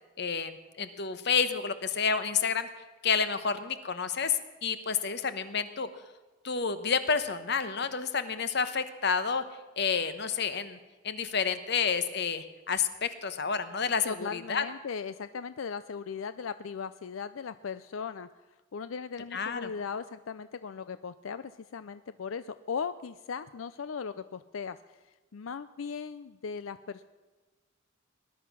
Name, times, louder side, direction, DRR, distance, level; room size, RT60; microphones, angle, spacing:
voice 1, 0.2-2.7 3.0-5.9 6.4-9.4 9.8-10.8 11.0-14.6 19.3-19.7, left 6 dB, 55° left, 11 dB, 1.1 m, -30 dB
voice 2, 14.0-18.3 18.7-24.8 25.3-27.0, left 6 dB, 90° left, 13 dB, 0.5 m, -38 dB
19.5 x 11.5 x 6.1 m, 1.3 s
head